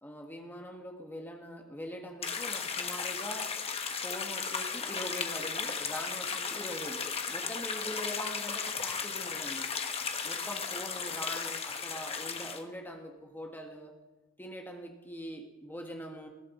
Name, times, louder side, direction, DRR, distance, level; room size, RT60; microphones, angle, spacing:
voice 1, 0.0-3.5 4.0-9.7 10.2-13.9 14.4-16.3, equal, 10° left, 2 dB, 1.3 m, -43 dB
sound 1, 2.2-12.6, left 5 dB, 30° left, 1.2 m, -35 dB
20.5 x 15.0 x 4.1 m, 1.2 s
head